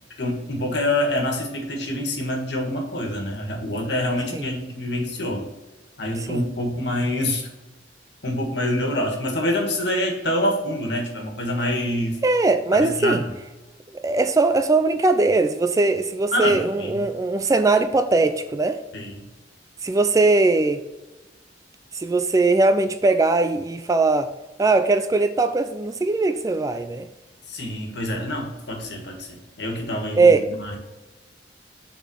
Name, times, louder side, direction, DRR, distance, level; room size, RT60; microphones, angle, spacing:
voice 1, 0.2-5.4 6.0-7.5 8.2-12.2 12.7-13.2 16.3-17.0 18.9-19.2 27.5-30.8, left 1 dB, 65° left, 1.7 m, -26 dB
voice 2, 12.2-13.2 14.0-18.8 19.8-20.8 21.9-24.3 24.6-27.1 30.2-30.5, right 3 dB, 20° right, 0.3 m, -20 dB
6.6 x 4.2 x 6.3 m
head